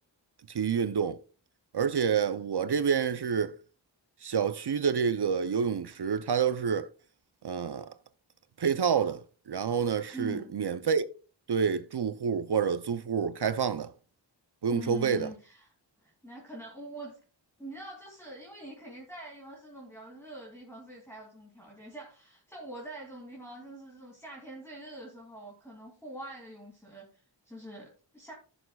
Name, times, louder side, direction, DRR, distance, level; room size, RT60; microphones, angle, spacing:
voice 1, 0.5-1.2 1.7-3.6 4.2-6.9 7.4-7.9 8.6-9.2 9.5-11.1 11.5-13.9 14.6-15.3, right 6 dB, 60° right, 0.6 m, -28 dB
voice 2, 10.1-10.5 14.7-15.7 16.0-17.2 17.6-28.3, right 1 dB, 5° left, 2.5 m, -44 dB
15.0 x 6.9 x 2.3 m
wide cardioid pair, 65°, 45 cm